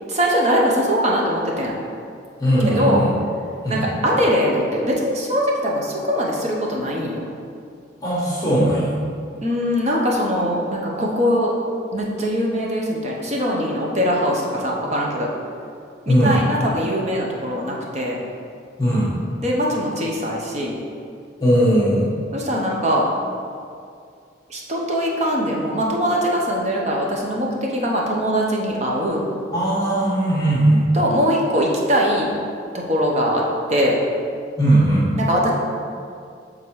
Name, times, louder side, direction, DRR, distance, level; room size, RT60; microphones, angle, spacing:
voice 1, 0.1-1.8 2.6-3.0 3.7-7.2 9.4-11.5 11.9-15.3 16.1-18.2 19.4-20.8 22.3-23.1 24.5-29.2 30.9-32.3 32.7-34.0 35.2-35.5, equal, 35° right, -2 dB, 0.9 m, -21 dB
voice 2, 2.4-3.1 3.6-3.8 8.0-9.0 16.1-16.4 18.8-19.1 21.4-22.1 29.5-30.8 34.6-35.1, right 1 dB, 20° left, -7 dB, 1.3 m, -18 dB
7.2 x 3.7 x 4.7 m, 2.3 s
head